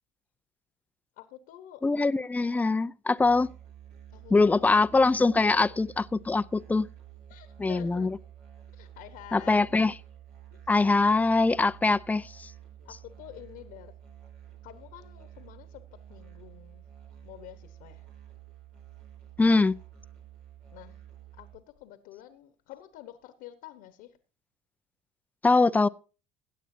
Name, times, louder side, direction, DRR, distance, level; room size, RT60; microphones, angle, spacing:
voice 1, 1.2-1.8 4.1-4.9 5.4-5.7 7.3-8.1 8.7-9.7 12.8-13.9 14.6-15.8 16.1-16.8 17.2-18.0 20.7-21.0 21.4-24.2, left 13 dB, 75° left, 1.2 m, -48 dB
voice 2, 1.8-3.5 4.3-6.9 7.6-8.1 9.3-9.9 10.7-12.5 19.4-19.7 25.4-25.9, left 3 dB, 10° left, 0.4 m, -23 dB
Musical instrument, 3.2-21.5, right 10 dB, 80° right, 4.0 m, -50 dB
16.5 x 9.2 x 2.7 m
supercardioid pair, 90°, 15 cm